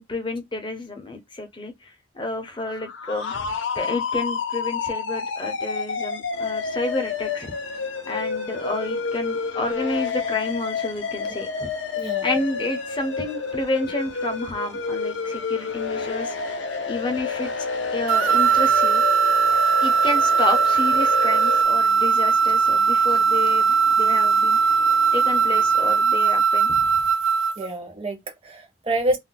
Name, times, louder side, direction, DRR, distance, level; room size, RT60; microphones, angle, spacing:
voice 1, 0.0-3.5 3.7-7.5 8.1-11.7 12.2-16.6 16.9-17.7 17.9-19.0 19.8-24.6 25.1-26.9, left 2 dB, 25° left, 0.5 m, -30 dB
sound 1, 2.6-21.6, left 5 dB, 70° left, 0.5 m, -29 dB
sound 2, 6.3-26.0, right 4 dB, 55° right, 1.2 m, -47 dB
voice 2, 11.9-12.3 27.6-29.2, right 1 dB, 30° right, 0.8 m, -27 dB
sound 3, 18.1-27.7, right 5 dB, 85° right, 0.4 m, -19 dB
2.4 x 2.1 x 3.8 m
head